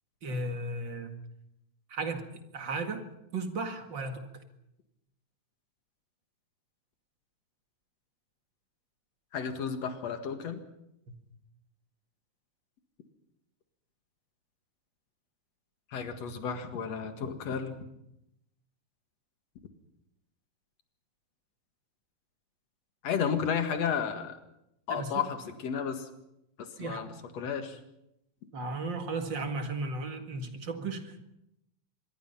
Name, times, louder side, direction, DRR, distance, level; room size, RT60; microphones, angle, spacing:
voice 1, 0.2-1.1 1.9-2.3 2.5-3.0 3.3-4.3 11.1-11.2 24.9-25.2 26.8-27.1 28.5-31.2, right 3 dB, 40° right, 6 dB, 2.4 m, -35 dB
voice 2, 9.3-10.6 15.9-17.8 23.0-24.4 24.9-26.1 26.8-27.8, left 7 dB, 65° left, 7 dB, 2.9 m, -32 dB
25.5 x 21.5 x 5.7 m, 0.83 s
omnidirectional pair, 3.3 m